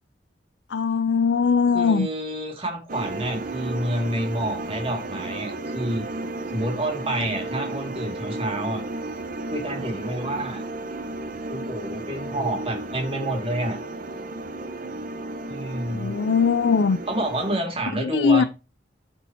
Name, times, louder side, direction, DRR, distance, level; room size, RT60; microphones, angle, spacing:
voice 1, 0.7-2.1 15.9-17.0 18.0-18.4, left 5 dB, 80° left, 0.5 m, -20 dB
voice 2, 1.7-6.1 6.5-8.8 9.5-10.6 11.5-13.8 15.5-16.2 17.1-18.5, right 1 dB, 30° right, 2.3 m, -28 dB
sound 1, 2.9-17.6, right 2 dB, 50° right, 0.9 m, -33 dB
12.5 x 4.4 x 2.8 m
head